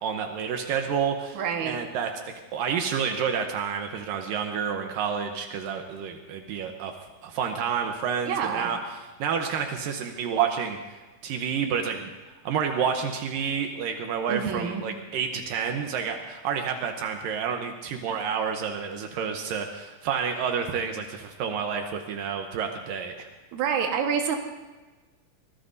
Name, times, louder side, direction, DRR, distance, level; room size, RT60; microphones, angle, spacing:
voice 1, 0.0-2.1 2.5-6.9 7.2-10.9 11.2-12.1 12.4-23.3, right 7 dB, 80° right, 4 dB, 2.6 m, -29 dB
voice 2, 1.3-1.8 8.3-8.7 14.3-14.8 23.5-24.4, right 7 dB, 65° right, 3 dB, 2.7 m, -27 dB
24.5 x 19.5 x 2.7 m, 1.2 s
omnidirectional pair, 3.9 m